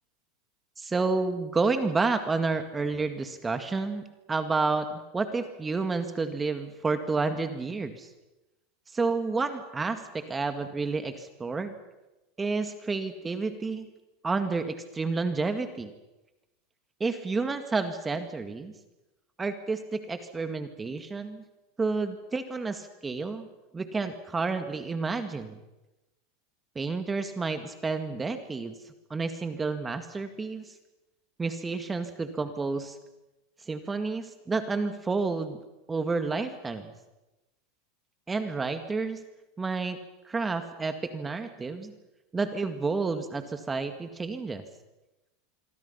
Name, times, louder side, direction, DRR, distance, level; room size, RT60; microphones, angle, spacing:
voice 1, 0.8-4.0 4.3-8.1 8.9-11.7 12.4-13.9 14.2-15.9 17.0-18.7 19.4-21.4 21.8-23.5 23.7-25.6 26.8-28.8 29.1-30.7 31.4-33.0 33.7-35.6 35.9-36.9 38.3-39.2 39.6-40.0 40.2-41.9 42.3-44.6, right 4 dB, 15° right, 8 dB, 2.0 m, -30 dB
26.0 x 23.5 x 5.7 m, 1.0 s
hypercardioid pair, 105°, 0 cm